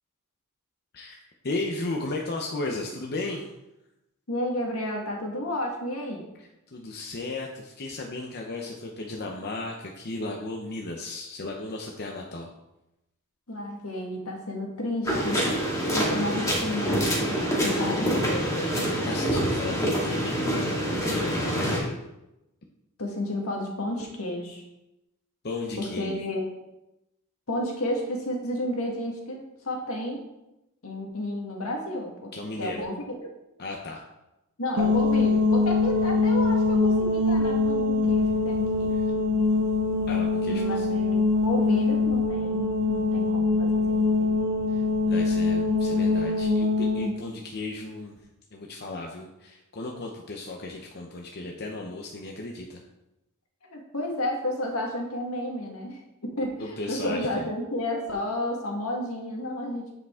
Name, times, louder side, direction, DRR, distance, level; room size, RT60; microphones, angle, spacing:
voice 1, 0.9-3.5 6.7-12.5 19.0-20.7 21.1-22.0 25.4-26.2 32.3-32.8 33.6-34.0 40.1-41.1 44.7-48.2 48.5-52.8 56.6-57.5, left 2 dB, 50° left, 1 dB, 0.8 m, -35 dB
voice 2, 4.3-6.3 13.5-15.5 15.9-18.8 23.0-24.6 25.8-26.5 27.5-30.2 30.8-32.3 32.6-33.3 34.6-38.9 40.5-44.3 53.7-59.9, left 1 dB, 75° left, 1 dB, 1.7 m, -32 dB
sound 1, 15.0-21.8, equal, 15° left, 2.1 m, -26 dB
sound 2, 34.8-47.1, left 3 dB, 85° right, 1.1 m, -23 dB
9.5 x 5.0 x 3.7 m, 0.93 s
head